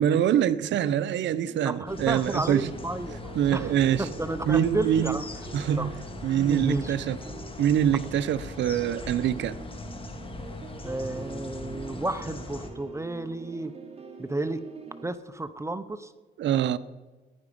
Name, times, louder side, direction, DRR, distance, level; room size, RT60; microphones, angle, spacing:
voice 1, 0.0-2.7 3.4-4.0 4.5-5.2 5.5-5.9 6.2-7.2 7.6-9.6 16.4-16.8, right 10 dB, 65° right, 0.6 m, -24 dB
sound 1, 1.0-15.1, right 4 dB, 30° right, 2.5 m, -45 dB
voice 2, 1.6-3.2 3.5-5.3 5.8-5.9 6.3-7.0 10.8-13.7 14.2-14.6 15.0-16.1, right 2 dB, 15° right, 0.8 m, -32 dB
sound 2, 1.9-12.7, left 2 dB, 25° left, 2.0 m, -40 dB
15.0 x 11.0 x 5.2 m
cardioid pair, 90°, 20 cm